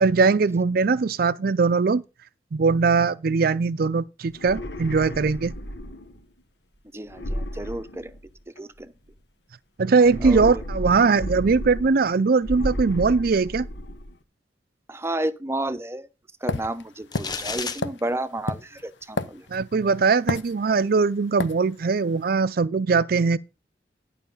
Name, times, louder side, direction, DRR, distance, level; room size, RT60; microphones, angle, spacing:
voice 1, 0.0-2.0 2.5-5.5 9.8-13.7 19.5-23.4, right 4 dB, 55° right, 0.4 m, -21 dB
sound 1, 4.3-6.2 7.1-8.6 10.0-12.1 12.4-14.1, equal, 70° left, 1.4 m, -33 dB
voice 2, 6.9-8.1 8.6-8.9 10.2-10.6 14.9-16.1 16.4-19.5, right 1 dB, 15° right, 0.7 m, -31 dB
sound 2, 16.5-19.8 20.3-21.0 21.4-21.6, left 3 dB, 85° left, 0.8 m, -30 dB
sound 3, 17.1-17.8, left 5 dB, 25° left, 0.8 m, -31 dB
11.5 x 5.8 x 5.4 m
head